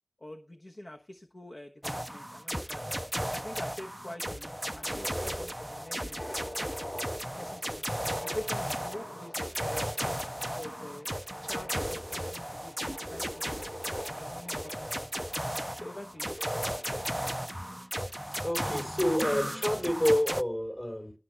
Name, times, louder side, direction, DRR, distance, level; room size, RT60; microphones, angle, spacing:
voice 1, 0.2-3.1 3.3-6.3 7.4-9.9 10.5-11.1 11.4-13.7 14.2-15.4 15.8-16.3, left 1 dB, 50° left, 1.2 m, -46 dB
sound 1, 1.8-20.4, equal, 10° right, 0.4 m, -35 dB
sound 2, 4.8-17.8, left 1 dB, 70° left, 6.1 m, -46 dB
voice 2, 18.4-21.1, equal, 30° left, 4.5 m, -28 dB
17.5 x 6.6 x 3.5 m
wide cardioid pair, 50°, 0 cm